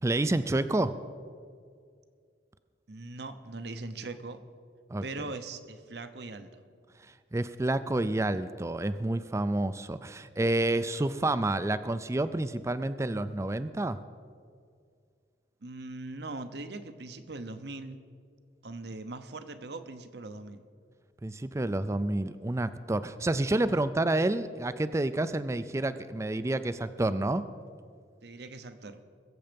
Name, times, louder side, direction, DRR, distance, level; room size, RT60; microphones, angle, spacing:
voice 1, 0.0-1.0 4.9-5.3 7.3-14.0 21.2-27.5, right 2 dB, 15° right, 13 dB, 0.4 m, -29 dB
voice 2, 2.9-4.4 5.0-6.6 15.6-18.0 18.6-20.6 28.2-29.0, right 2 dB, 65° right, 10 dB, 0.9 m, -41 dB
21.5 x 7.7 x 5.2 m, 2.2 s
head